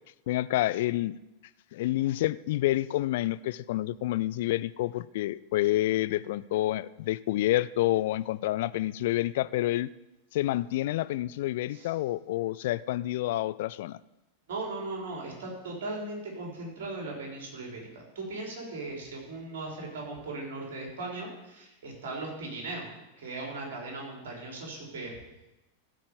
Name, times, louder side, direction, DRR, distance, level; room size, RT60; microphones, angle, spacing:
voice 1, 0.3-1.2 1.7-9.9 10.3-14.0, left 15 dB, 55° left, 17 dB, 0.4 m, -28 dB
voice 2, 14.5-22.9 23.2-25.1, right 2 dB, 55° right, 0 dB, 4.0 m, -38 dB
15.5 x 5.2 x 7.0 m, 0.98 s
figure-of-eight pair, 90°, 0 cm